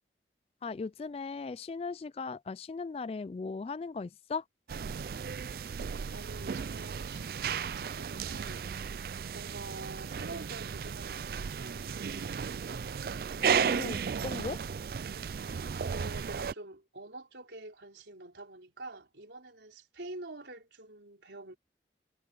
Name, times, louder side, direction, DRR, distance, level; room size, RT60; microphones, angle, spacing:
voice 1, 0.6-4.4 13.4-14.6, left 4 dB, 35° left, 0.3 m, -38 dB
sound 1, 4.7-16.5, right 6 dB, 55° right, 0.3 m, -34 dB
voice 2, 6.1-8.6 9.3-12.9 15.8-21.6, right 2 dB, 90° right, 4.2 m, -47 dB
head